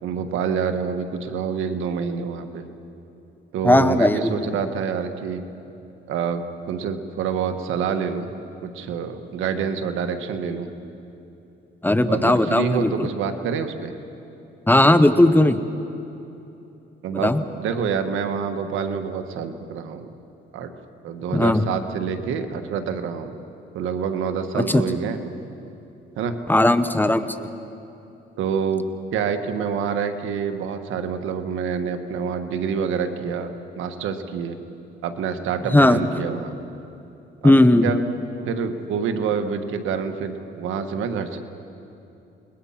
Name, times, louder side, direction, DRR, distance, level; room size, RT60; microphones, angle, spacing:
voice 1, 0.0-2.6 3.5-5.4 6.1-8.3 8.6-10.7 12.0-13.9 17.0-17.3 17.6-20.1 20.5-20.7 21.0-23.3 23.7-25.2 26.2-26.4 28.4-28.8 29.1-34.6 35.0-36.5 37.4-38.0 38.5-41.4, right 6 dB, 85° right, 7 dB, 1.5 m, -27 dB
voice 2, 3.6-4.5 11.8-12.9 14.7-15.6 17.1-17.4 21.3-21.7 24.5-24.8 26.5-27.5 35.7-36.0 37.4-37.9, left 1 dB, 10° left, 11 dB, 1.0 m, -17 dB
29.5 x 21.0 x 5.8 m, 2.9 s
cardioid pair, 90°, 20 cm